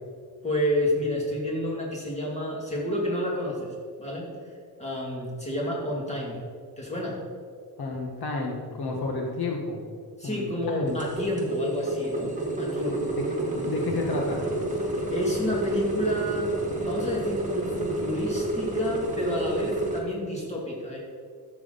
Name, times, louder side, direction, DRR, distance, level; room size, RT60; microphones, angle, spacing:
voice 1, 0.4-3.7 4.0-4.3 4.8-6.4 6.8-7.2 10.2-13.2 15.1-21.0, left 1 dB, 15° left, -4 dB, 2.5 m, -29 dB
voice 2, 7.8-9.8 10.2-11.0 13.2-14.5, left 3 dB, 70° left, 0 dB, 1.4 m, -31 dB
sound 1, 10.9-20.0, right 1 dB, 20° right, 1.7 m, -30 dB
12.5 x 7.5 x 4.0 m, 2.1 s
wide cardioid pair, 150°, 39 cm